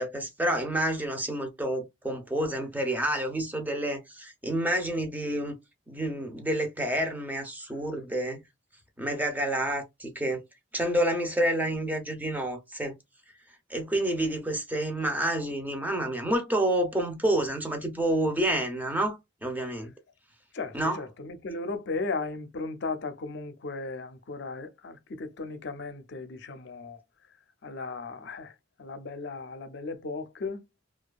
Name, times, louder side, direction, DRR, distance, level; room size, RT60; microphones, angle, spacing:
voice 1, 0.0-5.6 5.9-8.4 9.0-10.4 10.7-12.9 13.7-19.9 20.7-21.1, right 1 dB, 10° right, 0.6 m, -29 dB
voice 2, 20.5-27.0 27.6-30.6, left 3 dB, 60° left, 0.5 m, -36 dB
2.6 x 2.3 x 2.3 m
head